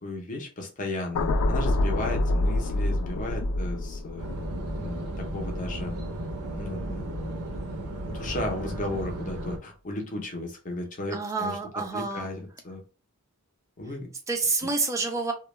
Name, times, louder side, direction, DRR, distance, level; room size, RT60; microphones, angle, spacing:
voice 1, 0.0-4.3 4.8-6.0 6.5-7.1 8.1-12.8 13.8-14.1, left 1 dB, 35° left, 3 dB, 0.6 m, -35 dB
sound 1, 1.1-7.4 7.8-8.1, left 1 dB, 85° left, 0.3 m, -28 dB
sound 2, 4.2-9.6, right 1 dB, 90° right, 0.6 m, -35 dB
voice 2, 11.1-12.3 14.3-15.3, right 4 dB, 15° right, 4 dB, 0.3 m, -28 dB
2.2 x 2.0 x 3.0 m, 0.36 s
head